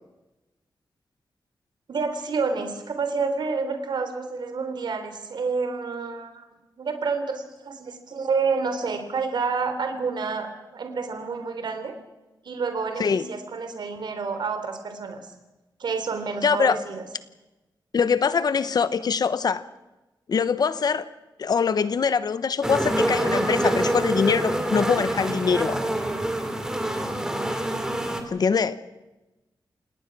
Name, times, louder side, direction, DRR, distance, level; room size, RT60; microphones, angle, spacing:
voice 1, 1.9-6.4 6.8-10.5 10.7-11.9 12.4-15.2 15.8-17.0 25.4-25.6, right 4 dB, 70° right, 6 dB, 3.5 m, -29 dB
voice 2, 16.4-16.8 17.9-19.6 20.3-21.1 21.4-25.8 28.3-28.8, left 6 dB, 55° left, 14 dB, 1.1 m, -23 dB
sound 1, 22.6-28.2, right 1 dB, 10° right, 2.6 m, -26 dB
28.0 x 18.5 x 6.1 m, 1.0 s
wide cardioid pair, 155°, 8 cm